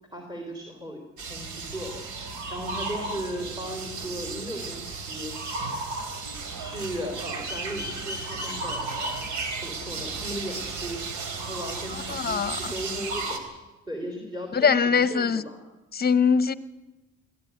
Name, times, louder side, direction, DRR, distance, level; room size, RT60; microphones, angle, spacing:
voice 1, 0.1-5.6 6.6-9.3 9.6-13.4 13.9-15.6, equal, 15° right, 3.9 m, -37 dB
sound 1, 1.2-13.4, right 3 dB, 75° right, 3.3 m, -34 dB
voice 2, 12.1-12.7 14.5-15.4 15.9-16.5, left 6 dB, 30° left, 1.0 m, -22 dB
22.0 x 15.0 x 9.5 m
cardioid pair, 90°, 30 cm